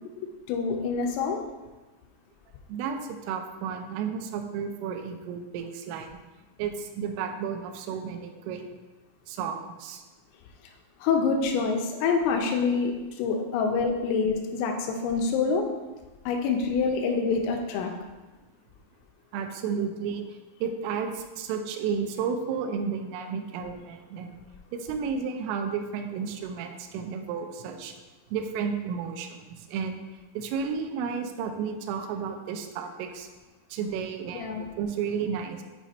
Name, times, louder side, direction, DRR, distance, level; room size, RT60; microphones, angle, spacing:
voice 1, 0.5-1.4 11.0-15.7 16.3-17.9 34.4-34.6, left 5 dB, 85° left, 2 dB, 3.2 m, -26 dB
voice 2, 2.7-6.1 6.6-8.7 9.3-10.0 19.3-24.3 24.7-27.9 28.3-30.0 30.4-33.3 33.7-35.6, right 6 dB, 85° right, 5 dB, 3.1 m, -32 dB
8.2 x 3.0 x 4.2 m, 1.2 s
omnidirectional pair, 5.8 m